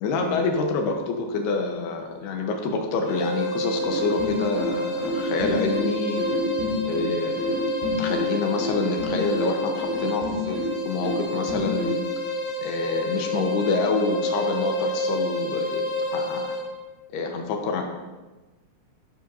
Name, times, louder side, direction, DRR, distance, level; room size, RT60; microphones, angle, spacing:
voice 1, 0.0-6.3 6.9-7.3 7.8-10.6 10.8-12.0 12.6-15.9 16.1-16.5 17.1-17.8, left 4 dB, 75° left, 3 dB, 3.0 m, -27 dB
sound 1, 3.1-16.7, left 1 dB, 60° left, 3.0 m, -29 dB
sound 2, 3.8-12.0, equal, 90° right, 4.5 m, -29 dB
12.5 x 10.5 x 2.7 m, 1.2 s
omnidirectional pair, 4.9 m